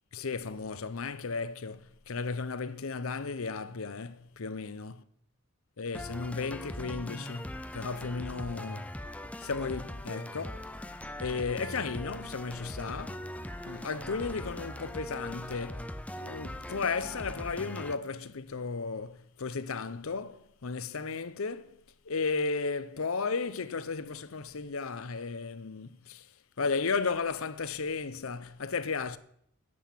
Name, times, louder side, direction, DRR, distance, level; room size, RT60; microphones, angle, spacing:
voice 1, 0.1-5.0 5.8-8.9 9.4-10.7 11.2-13.2 13.6-15.9 16.2-21.8 22.1-26.3 26.6-29.2, left 4 dB, 70° left, 0.7 m, -34 dB
sound 1, 5.9-17.9, left 1 dB, 5° left, 0.5 m, -41 dB
sound 2, 9.4-14.4, right 1 dB, 60° right, 5.1 m, -60 dB
10.5 x 8.0 x 7.5 m
head